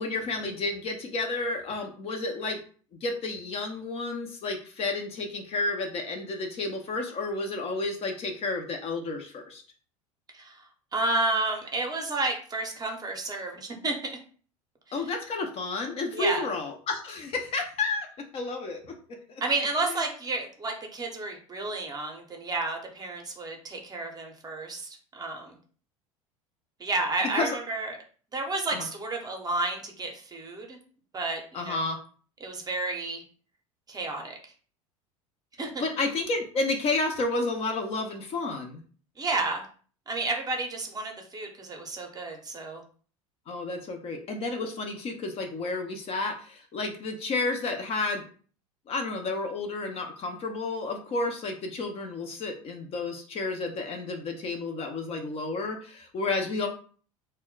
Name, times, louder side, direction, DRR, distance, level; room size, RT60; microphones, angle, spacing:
voice 1, 0.0-2.6 3.0-9.6 14.9-18.1 18.3-18.9 19.3-19.4 19.8-20.0 27.3-27.6 28.7-28.9 31.5-32.0 35.8-38.8 43.5-48.2 48.9-56.7, left 3 dB, 35° left, 4 dB, 0.5 m, -31 dB
voice 2, 10.9-13.9 16.1-16.5 19.4-25.5 26.8-28.0 28.3-30.8 31.1-31.9 32.4-33.2 33.9-34.4 35.6-35.8 39.2-39.7 40.1-42.8, right 2 dB, 20° right, 2 dB, 0.7 m, -31 dB
2.1 x 2.0 x 3.8 m, 0.42 s
figure-of-eight pair, 75°, 18 cm